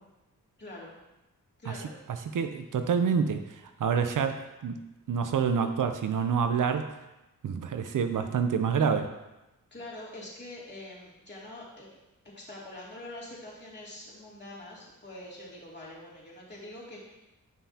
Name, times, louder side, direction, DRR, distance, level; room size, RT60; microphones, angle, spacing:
voice 1, 0.6-0.9 1.6-1.9 9.7-11.9 12.4-17.1, left 1 dB, 30° left, -6 dB, 2.7 m, -44 dB
voice 2, 2.1-4.8 5.1-7.0 7.4-9.2, right 6 dB, 65° right, 8 dB, 0.6 m, -27 dB
9.3 x 5.6 x 2.8 m, 0.98 s
cardioid pair, 70°, 33 cm